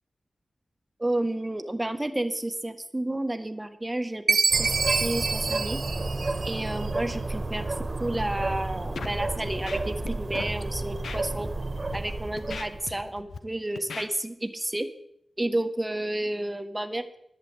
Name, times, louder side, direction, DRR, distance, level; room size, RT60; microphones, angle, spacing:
voice 1, 1.0-5.8 6.4-7.7 8.0-11.5 11.9-14.9 15.4-17.2, right 1 dB, 20° right, 8 dB, 1.4 m, -31 dB
Chime, 4.3-6.8, right 4 dB, 70° right, 0.5 m, -26 dB
sound 1, 4.5-13.0, right 2 dB, 45° right, 1.7 m, -31 dB
Scratching (performance technique), 8.9-9.2 9.5-10.1 10.3-10.5 11.0-11.2 11.7-12.0 12.4-13.4 13.8-14.1, left 5 dB, 90° left, 0.9 m, -37 dB
11.0 x 7.5 x 8.8 m, 0.80 s
cardioid pair, 50°, 0 cm